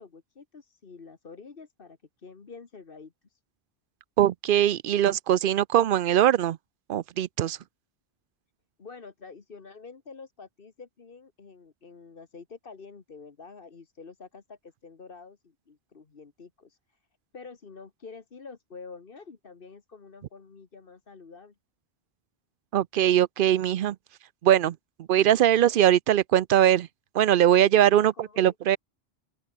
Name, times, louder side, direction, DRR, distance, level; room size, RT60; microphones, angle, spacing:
voice 1, 0.0-3.4 8.8-17.0 17.3-21.6 27.6-28.5, left 4 dB, 60° left, 1.7 m, -47 dB
voice 2, 4.2-6.6 6.9-7.6 22.7-24.0 24.4-26.9 27.1-28.8, right 11 dB, 60° right, 0.7 m, -21 dB
open air
omnidirectional pair, 1.1 m